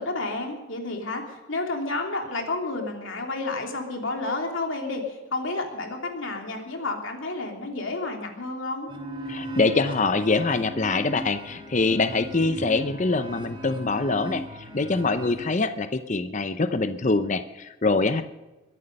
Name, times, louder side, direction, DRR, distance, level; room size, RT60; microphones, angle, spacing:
voice 1, 0.0-8.9, left 2 dB, 65° left, 2 dB, 3.1 m, -30 dB
sound 1, 8.9-15.5, equal, 25° right, 3.1 m, -37 dB
voice 2, 9.3-14.4 14.7-18.2, left 3 dB, 35° left, 10 dB, 0.6 m, -24 dB
22.5 x 11.0 x 5.4 m, 1.1 s
head